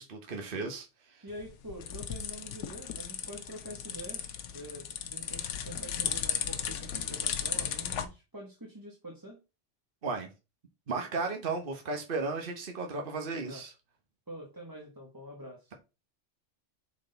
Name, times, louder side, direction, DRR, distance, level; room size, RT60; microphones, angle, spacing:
voice 1, 0.0-1.2 10.0-10.3 10.9-13.7, right 4 dB, 50° right, 1.2 m, -35 dB
voice 2, 1.2-9.4 13.5-13.6 14.3-15.7, equal, 15° right, 1.3 m, -46 dB
sound 1, 1.3-8.1, left 8 dB, 80° left, 1.0 m, -35 dB
6.1 x 4.2 x 3.9 m
omnidirectional pair, 1.3 m